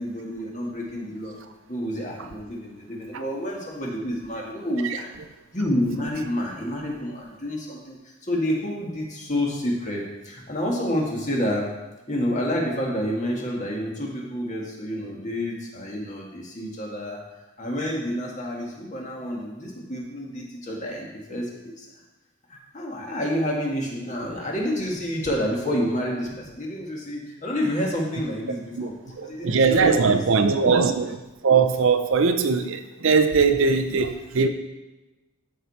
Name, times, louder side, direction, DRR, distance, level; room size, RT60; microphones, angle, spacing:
voice 1, 0.0-1.4 1.7-5.1 5.5-11.7 12.1-17.2 17.6-21.9 22.5-30.2 30.6-30.9, equal, 35° left, -2 dB, 1.7 m, -29 dB
voice 2, 29.1-31.2 31.4-34.5, right 5 dB, 65° right, 8 dB, 0.6 m, -20 dB
13.5 x 4.9 x 4.2 m, 1.1 s
head